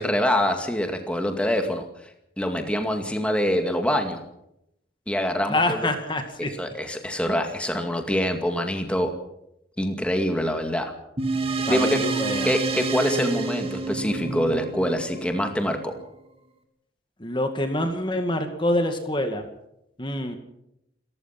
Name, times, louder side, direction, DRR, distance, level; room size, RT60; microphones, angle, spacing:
voice 1, 0.0-1.9 2.4-4.2 5.1-5.9 6.4-9.1 9.8-10.9 11.7-12.0 12.4-15.9, equal, 5° left, 5 dB, 2.2 m, -25 dB
voice 2, 5.5-6.5 11.7-12.5 17.2-19.5 20.0-20.4, left 1 dB, 25° left, 6 dB, 2.2 m, -26 dB
sound 1, 11.2-16.0, right 4 dB, 35° right, 3.1 m, -28 dB
29.0 x 15.0 x 6.0 m, 0.81 s
head